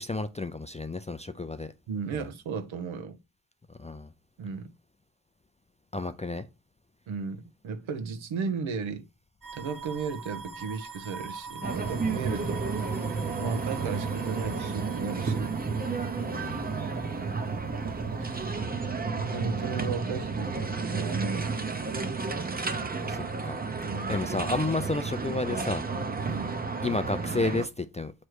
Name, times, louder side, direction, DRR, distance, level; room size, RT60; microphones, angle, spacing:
voice 1, 0.0-1.7 3.8-4.1 5.9-6.5 12.3-12.4 16.3-16.9 23.0-23.6 24.1-25.8 26.8-28.1, left 2 dB, 15° left, 0.3 m, -31 dB
voice 2, 1.9-3.2 4.4-4.7 7.1-9.1 9.5-12.6 13.4-15.6 17.2-17.4 18.2-18.4 19.1-20.7 20.9-21.6 23.9-24.2 26.3-26.6, right 5 dB, 80° right, 1.0 m, -35 dB
sound 1, 9.4-18.5, right 4 dB, 45° right, 1.1 m, -44 dB
sound 2, 11.6-27.7, right 4 dB, 20° right, 0.7 m, -32 dB
7.7 x 3.2 x 4.7 m
cardioid pair, 110°, 46 cm